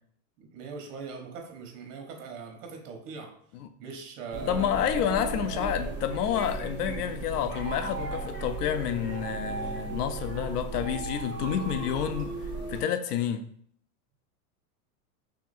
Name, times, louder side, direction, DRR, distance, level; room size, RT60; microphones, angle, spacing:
voice 1, 0.4-3.3 3.8-4.9 11.4-12.1, right 5 dB, 55° right, 1.2 m, -42 dB
sound 1, 4.3-12.8, right 3 dB, 25° right, 0.7 m, -36 dB
voice 2, 4.5-12.3 12.7-13.5, left 9 dB, 90° left, 0.6 m, -29 dB
sound 2, 5.8-13.3, right 3 dB, 25° left, 1.3 m, -41 dB
3.4 x 2.8 x 4.1 m
supercardioid pair, 140°, 45 cm